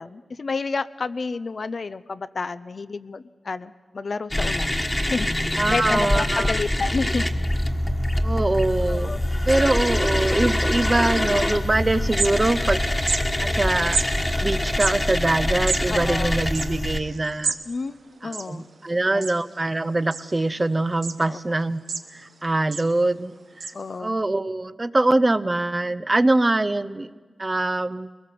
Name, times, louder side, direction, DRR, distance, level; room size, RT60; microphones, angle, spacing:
voice 1, 0.0-4.7 5.1-7.3 8.9-9.2 15.9-16.4 17.7-18.6 18.9-19.3 21.2-21.4 23.7-24.1, left 4 dB, 60° left, 14 dB, 0.6 m, -30 dB
sound 1, 4.3-17.0, left 1 dB, 20° left, 1.5 m, -24 dB
voice 2, 5.6-6.5 8.2-9.1 9.5-12.9 13.1-17.5 18.2-21.8 22.1-23.7 24.0-27.1 27.4-28.1, right 2 dB, 30° right, 14 dB, 0.7 m, -23 dB
sound 2, 12.2-12.7 13.0-13.2 13.9-14.1 14.7-17.6 17.9-18.0 18.2-18.9 19.2-19.6 20.1-20.6 21.0-21.2 21.6-22.3 22.7-22.9 23.6-23.7, right 4 dB, 75° right, 1.1 m, -29 dB
22.0 x 19.0 x 7.7 m, 1.4 s
wide cardioid pair, 70°, 0 cm